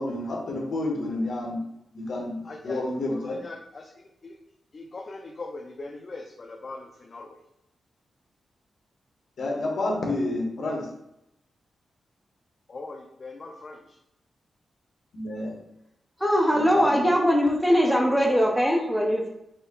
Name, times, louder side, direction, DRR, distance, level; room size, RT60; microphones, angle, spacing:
voice 1, 0.0-1.6 1.9-3.4 9.4-10.9 15.1-15.6 16.5-17.1, left 2 dB, 65° left, -1 dB, 1.3 m, -30 dB
voice 2, 2.4-2.8 3.1-4.4 4.7-7.4 12.7-14.0, left 3 dB, 40° left, 0 dB, 0.5 m, -41 dB
voice 3, 16.2-19.3, equal, 5° right, 0 dB, 0.7 m, -21 dB
4.2 x 2.7 x 3.9 m, 0.82 s
wide cardioid pair, 140°, 0 cm